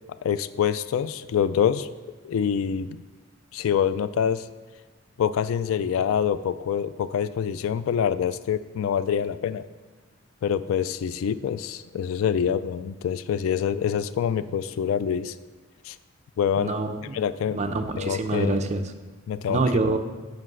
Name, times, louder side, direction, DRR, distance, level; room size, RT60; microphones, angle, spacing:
voice 1, 0.2-1.9 2.2-3.0 3.5-4.5 5.2-9.7 10.4-15.4 15.9-16.0 16.4-16.7 17.1-17.6 18.0-18.6 19.3-19.6, left 8 dB, 75° left, 16 dB, 0.3 m, -25 dB
voice 2, 16.6-17.2 17.5-18.9 19.5-20.0, right 2 dB, 35° right, 5 dB, 0.6 m, -26 dB
7.8 x 5.3 x 6.1 m, 1.3 s
head